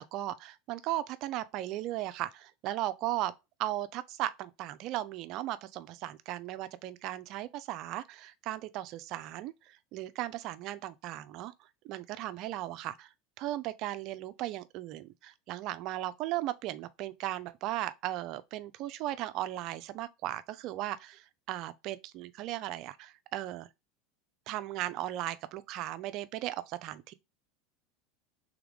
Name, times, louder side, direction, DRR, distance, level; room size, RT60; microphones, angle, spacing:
voice 1, 0.0-3.3 3.6-23.7 24.5-27.1, right 14 dB, 55° right, 0.4 m, -37 dB
3.6 x 3.5 x 3.4 m
hypercardioid pair, 95°, 0 cm